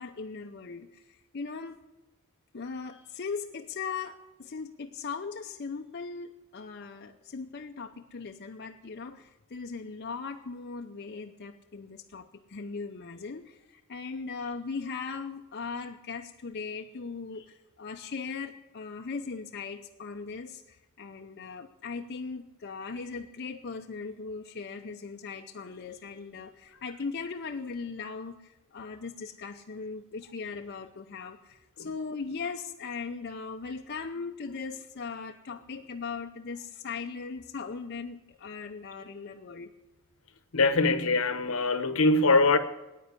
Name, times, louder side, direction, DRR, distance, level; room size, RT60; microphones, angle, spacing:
voice 1, 0.0-1.8 2.5-39.7, left 4 dB, 50° left, 0.6 m, -39 dB
voice 2, 40.5-42.6, left 3 dB, 70° left, 1.0 m, -23 dB
9.5 x 9.2 x 9.8 m
head